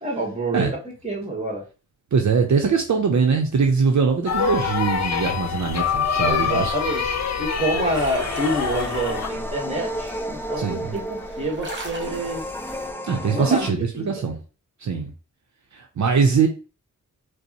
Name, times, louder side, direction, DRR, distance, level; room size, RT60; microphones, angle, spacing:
voice 1, 0.0-1.6 6.2-12.4 13.3-14.1, right 1 dB, 20° right, 1.3 m, -27 dB
voice 2, 2.1-6.7 10.6-10.9 13.0-14.4 14.8-15.1 15.7-16.5, right 5 dB, 60° right, 0.6 m, -22 dB
sound 1, 4.2-12.9, right 1 dB, 35° right, 1.1 m, -40 dB
sound 2, 4.3-9.3, left 6 dB, 55° left, 0.7 m, -25 dB
sound 3, 7.9-13.7, equal, 5° left, 0.4 m, -33 dB
5.1 x 2.0 x 2.9 m
wide cardioid pair, 80°, 32 cm